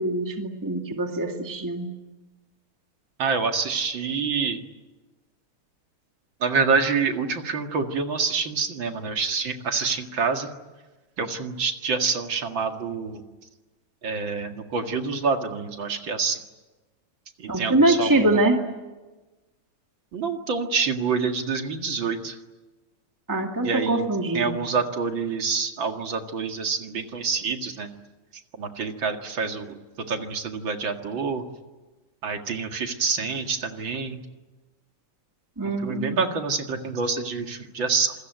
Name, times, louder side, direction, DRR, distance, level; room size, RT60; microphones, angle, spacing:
voice 1, 0.0-1.9 17.5-18.6 23.3-24.6 35.6-36.3, right 2 dB, 10° right, 3 dB, 2.1 m, -23 dB
voice 2, 3.2-4.6 6.4-10.5 11.2-13.2 14.0-16.4 17.4-18.4 20.1-22.4 23.6-24.0 24.3-27.9 28.6-29.7 30.1-31.4 32.2-34.2 35.8-38.1, right 5 dB, 60° right, 5 dB, 2.7 m, -27 dB
27.0 x 22.0 x 9.2 m, 1.2 s
omnidirectional pair, 2.4 m